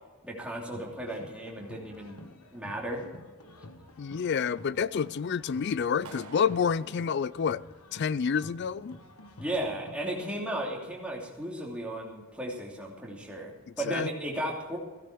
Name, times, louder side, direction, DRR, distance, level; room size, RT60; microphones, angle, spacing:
voice 1, 0.2-2.2 2.5-3.1 9.4-14.8, right 1 dB, 5° right, 3.0 m, -35 dB
sound 1, 0.7-10.3, left 1 dB, 85° left, 1.3 m, -50 dB
voice 2, 4.0-7.6 7.9-9.0 13.8-14.1, left 6 dB, 50° left, 0.4 m, -28 dB
Clapping, 6.0-8.1, right 4 dB, 85° right, 1.5 m, -50 dB
16.0 x 13.5 x 4.7 m
head